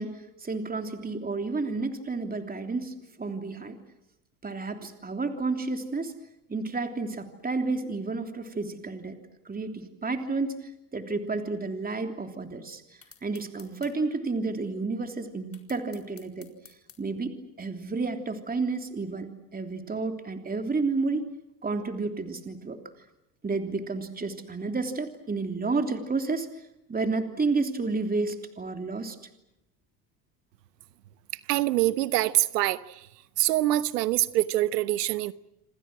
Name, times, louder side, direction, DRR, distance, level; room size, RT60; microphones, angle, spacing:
voice 1, 0.0-3.8 4.4-6.1 6.5-9.2 9.4-12.8 13.2-16.5 17.0-21.3 21.6-22.8 23.4-26.5 26.9-29.2, right 3 dB, 20° right, 3.3 m, -31 dB
sound 1, 13.0-14.0 15.5-17.0, left 6 dB, 30° left, 4.6 m, -52 dB
voice 2, 31.5-33.1 33.4-35.3, right 15 dB, 90° right, 1.1 m, -25 dB
27.5 x 26.5 x 6.2 m
hypercardioid pair, 85°, 47 cm